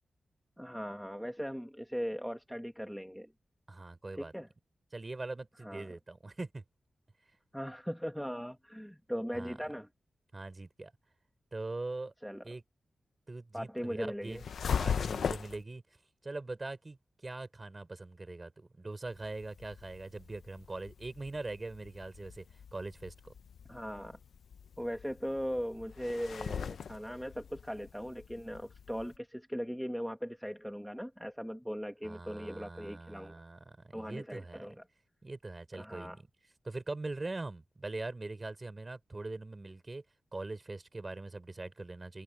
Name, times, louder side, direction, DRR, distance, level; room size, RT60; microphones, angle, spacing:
voice 1, 0.6-3.3 4.2-4.5 5.6-5.9 7.5-9.9 12.2-12.5 13.5-14.4 23.7-24.2 24.8-33.3 33.9-34.8 35.8-36.2, equal, ahead, 1.4 m, -39 dB
voice 2, 3.7-4.3 4.9-6.6 9.3-9.6 10.3-10.9 11.5-12.1 12.4-12.6 13.3-14.5 14.8-15.8 16.2-22.4 22.7-23.3 32.0-34.7 35.2-36.3 36.6-40.0 40.3-42.2, right 2 dB, 25° right, 4.3 m, -42 dB
sound 1, 14.3-15.6 19.1-29.2, left 7 dB, 85° left, 0.8 m, -40 dB
wide cardioid pair, 105°, 0 cm